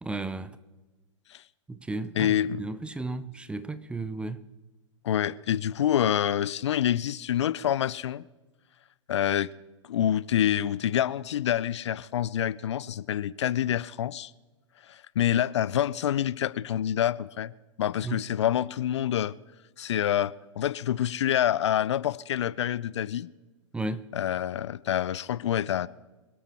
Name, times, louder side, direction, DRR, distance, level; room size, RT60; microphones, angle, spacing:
voice 1, 0.0-0.6 1.7-4.4 18.0-18.2 23.7-24.1, right 2 dB, 5° right, 0.6 m, -34 dB
voice 2, 2.2-2.6 5.0-8.2 9.1-9.5 9.9-14.3 14.9-17.5 17.8-19.3 19.8-23.3 24.1-25.9, left 10 dB, 60° left, 0.5 m, -27 dB
26.0 x 8.7 x 4.3 m
figure-of-eight pair, 105°, 16 cm